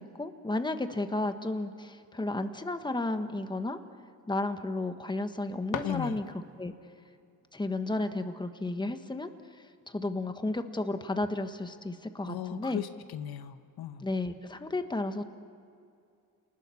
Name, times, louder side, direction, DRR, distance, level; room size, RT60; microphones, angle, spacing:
voice 1, 0.0-3.8 4.3-6.2 6.6-6.7 7.5-9.3 9.9-12.8 14.0-15.2, left 2 dB, 10° left, 8 dB, 1.3 m, -33 dB
sound 1, 5.2-6.7, left 7 dB, 55° left, 1.5 m, -40 dB
voice 2, 5.8-6.2 12.3-14.1, left 10 dB, 75° left, 10 dB, 1.1 m, -37 dB
28.5 x 19.5 x 7.1 m, 2.4 s
cardioid pair, 105°, 37 cm